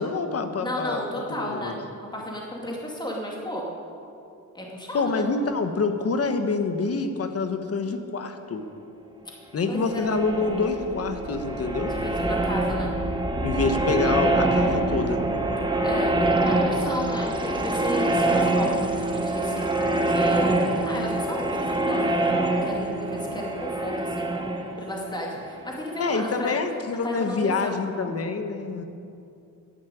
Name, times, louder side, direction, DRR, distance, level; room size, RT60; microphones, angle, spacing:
voice 1, 0.0-1.0 1.4-1.8 4.9-8.6 9.5-11.9 13.4-15.2 26.0-28.9, left 4 dB, 45° left, 7 dB, 1.2 m, -26 dB
voice 2, 0.6-1.8 2.1-3.6 4.5-5.3 9.7-10.0 11.9-12.9 15.8-22.3 22.6-24.4 24.8-26.5 27.0-27.8, equal, 15° left, -2 dB, 2.4 m, -33 dB
sound 1, 9.7-26.3, right 2 dB, 15° right, 1.2 m, -25 dB
11.5 x 10.0 x 9.1 m, 2.6 s
wide cardioid pair, 150°, 32 cm